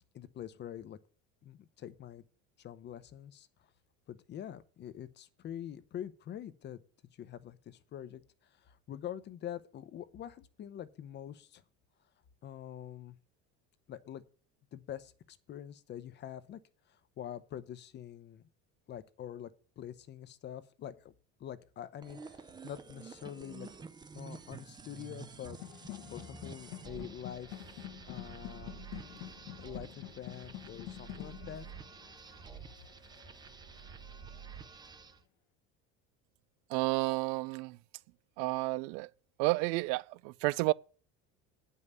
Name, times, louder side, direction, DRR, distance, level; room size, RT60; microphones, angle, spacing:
voice 1, 0.1-1.0 1.4-2.2 2.6-3.7 4.1-6.8 7.1-11.6 12.4-13.2 13.9-14.2 14.7-16.6 16.9-18.4 18.9-21.1 21.4-23.7 24.1-25.8 26.1-28.8 29.6-31.7, left 10 dB, 35° left, 0.7 m, -45 dB
sound 1, 22.0-35.2, right 5 dB, 15° right, 0.5 m, -50 dB
sound 2, 25.5-34.4, left 13 dB, 80° left, 1.2 m, -48 dB
voice 2, 36.7-37.8 38.4-39.1 39.4-40.7, right 22 dB, 80° right, 0.5 m, -31 dB
9.5 x 5.5 x 8.1 m
cardioid pair, 150°, 32 cm